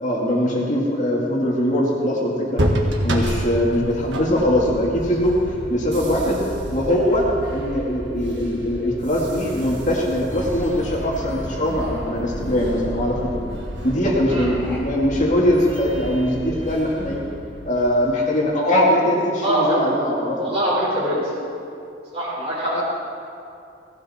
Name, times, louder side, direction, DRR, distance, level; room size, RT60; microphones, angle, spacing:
voice 1, 0.0-2.6 3.0-5.4 5.7-6.4 6.7-13.3 13.8-17.2 17.7-20.5 22.7-22.8, equal, 45° left, -3 dB, 2.2 m, -21 dB
sound 1, 2.6-18.3, right 1 dB, 75° right, 1.7 m, -30 dB
sound 2, 10.3-16.9, left 1 dB, 10° left, 2.9 m, -36 dB
voice 2, 19.3-19.8 20.4-21.2 22.1-22.8, equal, 35° right, -8 dB, 4.7 m, -23 dB
18.0 x 15.5 x 4.3 m, 2.7 s
head